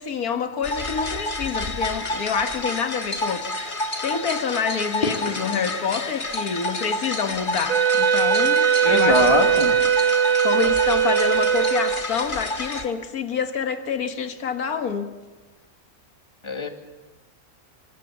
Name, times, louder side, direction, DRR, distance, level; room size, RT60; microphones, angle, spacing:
voice 1, 0.0-3.5 4.0-9.3 10.4-15.1, left 6 dB, 80° left, 8 dB, 1.8 m, -27 dB
sound 1, 0.6-12.9, left 2 dB, 35° left, 1.8 m, -29 dB
Wind instrument woodwind instrument, 7.7-12.3, right 8 dB, 65° right, 1.6 m, -20 dB
voice 2, 8.8-9.7 16.4-16.7, left 2 dB, 20° left, 5 dB, 2.0 m, -22 dB
24.5 x 24.5 x 7.2 m, 1.3 s
omnidirectional pair, 1.5 m